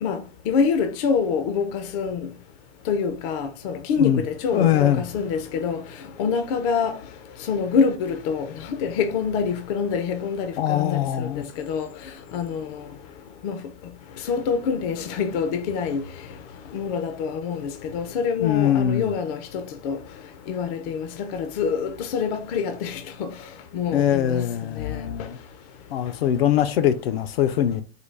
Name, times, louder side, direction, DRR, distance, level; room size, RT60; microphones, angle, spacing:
voice 1, 0.0-2.3 2.9-5.8 6.2-7.0 7.4-11.9 12.3-12.8 13.4-13.6 14.3-16.0 16.7-20.0 20.5-23.3 23.7-24.5 24.8-25.0, left 6 dB, 40° left, 0.4 m, -26 dB
voice 2, 4.5-5.1 10.6-11.4 18.4-19.1 23.9-25.4 25.9-27.8, left 10 dB, 85° left, 0.6 m, -22 dB
3.9 x 2.2 x 3.2 m
supercardioid pair, 145°, 30 cm